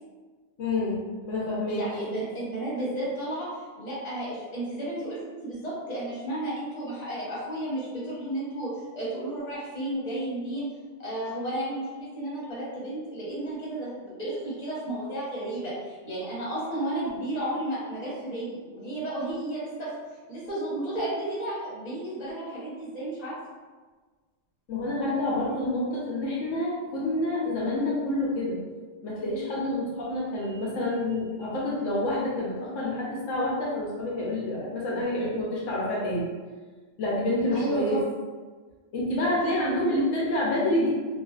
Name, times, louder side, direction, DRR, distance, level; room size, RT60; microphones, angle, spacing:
voice 1, 0.6-1.0 1.3-1.8 24.7-28.6 29.0-36.3 37.0-38.0 38.9-40.9, left 1 dB, 85° left, -5 dB, 1.0 m, -28 dB
voice 2, 1.7-3.5 3.8-10.7 11.0-19.9 20.3-23.4 37.5-38.0, right 1 dB, 35° left, -9 dB, 1.0 m, -32 dB
2.4 x 2.4 x 2.3 m, 1.4 s
omnidirectional pair, 1.3 m